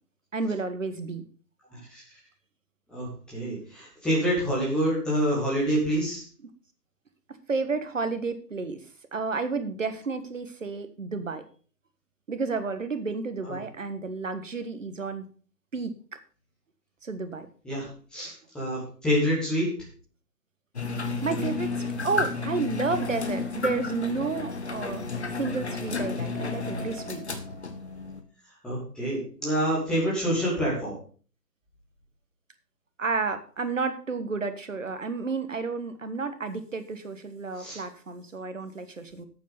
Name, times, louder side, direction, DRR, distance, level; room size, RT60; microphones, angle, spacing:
voice 1, 0.3-1.2 7.3-11.4 12.3-15.2 15.7-15.9 17.0-17.5 21.2-25.0 25.4-27.2 33.0-39.2, right 4 dB, 50° right, 10 dB, 1.5 m, -31 dB
voice 2, 1.7-2.0 2.9-6.2 13.5-13.6 17.6-17.9 18.1-19.7 28.6-30.9 37.6-37.8, equal, ahead, -7 dB, 1.7 m, -27 dB
sound 1, 20.7-28.2, left 4 dB, 45° left, 1.3 m, -32 dB
8.7 x 8.5 x 5.2 m, 0.41 s
figure-of-eight pair, 150°, 48 cm